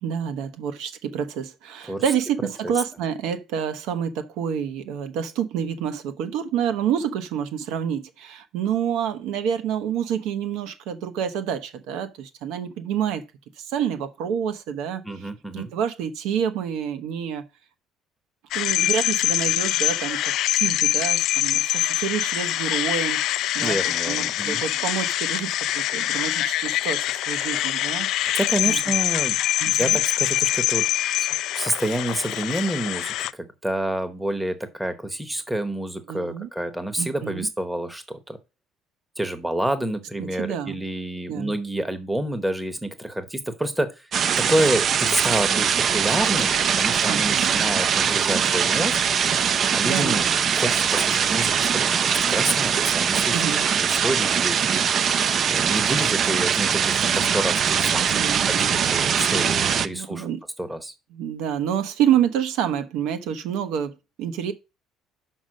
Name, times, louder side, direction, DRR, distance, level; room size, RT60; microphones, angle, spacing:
voice 1, 0.0-13.2 13.6-17.4 18.5-23.8 24.1-27.0 27.3-28.1 28.6-28.8 29.6-30.0 36.1-36.5 37.0-37.5 40.2-40.8 41.3-41.5 47.0-47.7 49.8-50.2 53.1-53.7 58.1-58.7 59.9-60.4 61.1-64.5, right 8 dB, 75° right, 1.0 m, -28 dB
voice 2, 15.0-15.7 23.6-24.6 28.2-29.4 29.7-30.9 31.2-31.3 31.5-38.4 39.2-44.1 44.4-49.0 49.7-50.2 50.6-53.4 53.8-54.6 55.5-60.3 60.6-60.9, right 1 dB, 5° right, 0.9 m, -28 dB
sound 1, 18.5-33.3, left 14 dB, 60° left, 0.3 m, -24 dB
sound 2, 44.1-59.9, right 7 dB, 40° right, 0.5 m, -22 dB
6.1 x 5.3 x 6.3 m
cardioid pair, 150°, 0 cm